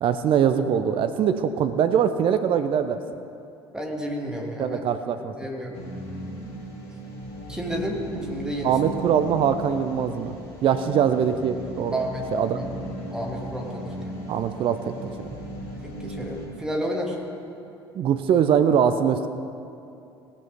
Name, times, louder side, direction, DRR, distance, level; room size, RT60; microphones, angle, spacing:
voice 1, 0.0-3.0 4.6-5.3 8.6-10.3 10.6-12.0 12.3-12.6 14.3-15.3 17.9-19.3, right 8 dB, 40° right, 10 dB, 0.6 m, -22 dB
voice 2, 3.7-4.8 5.2-5.9 7.5-8.0 8.3-8.8 11.9-12.2 12.5-12.6 13.1-13.8 15.8-17.2, equal, 5° right, -1 dB, 2.2 m, -31 dB
sound 1, 5.7-16.5, right 1 dB, 65° left, 3.3 m, -37 dB
18.0 x 9.7 x 3.6 m, 2.7 s
figure-of-eight pair, 60°, 14 cm